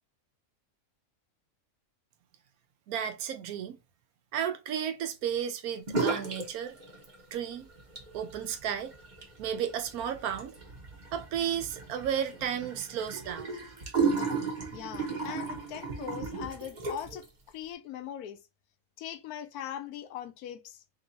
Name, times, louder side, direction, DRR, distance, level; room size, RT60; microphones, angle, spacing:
voice 1, 2.9-3.8 4.3-6.8 7.3-7.7 8.1-8.9 9.4-10.5 11.1-13.5, right 9 dB, 80° right, 1.1 m, -33 dB
sound 1, 5.9-6.5 6.7-7.4 7.8-17.2, right 4 dB, 35° right, 0.9 m, -34 dB
voice 2, 14.7-17.3 17.5-18.4 19.0-20.8, left 10 dB, 85° left, 1.1 m, -40 dB
3.0 x 2.7 x 4.0 m
omnidirectional pair, 1.6 m